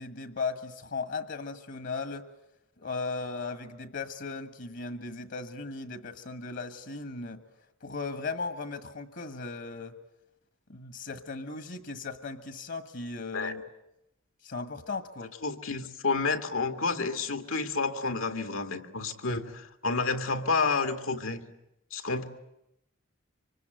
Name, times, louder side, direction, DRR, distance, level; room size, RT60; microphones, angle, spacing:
voice 1, 0.0-2.3 2.8-7.4 7.8-10.0 10.7-13.6 14.4-15.3, left 4 dB, 60° left, 10 dB, 1.5 m, -37 dB
voice 2, 15.4-21.4 21.9-22.2, left 4 dB, 85° left, 7 dB, 2.0 m, -30 dB
25.5 x 25.5 x 9.1 m, 0.87 s
head